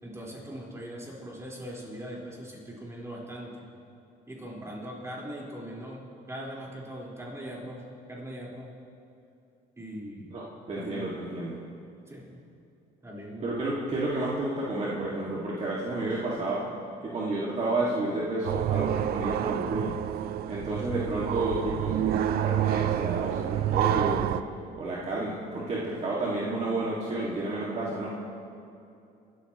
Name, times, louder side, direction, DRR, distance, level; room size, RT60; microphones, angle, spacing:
voice 1, 0.0-3.5 4.3-6.0 6.3-8.7 9.8-10.3 10.8-11.1 12.1-12.4 13.0-13.6, equal, 15° right, -5 dB, 4.4 m, -40 dB
voice 2, 10.3-11.6 13.4-16.7 17.0-19.9 20.5-24.3 24.8-28.1, right 2 dB, 40° right, -6 dB, 2.1 m, -31 dB
sound 1, 18.4-24.4, right 11 dB, 65° right, 0.5 m, -28 dB
25.5 x 13.5 x 3.1 m, 2.6 s
cardioid pair, 110°, 17 cm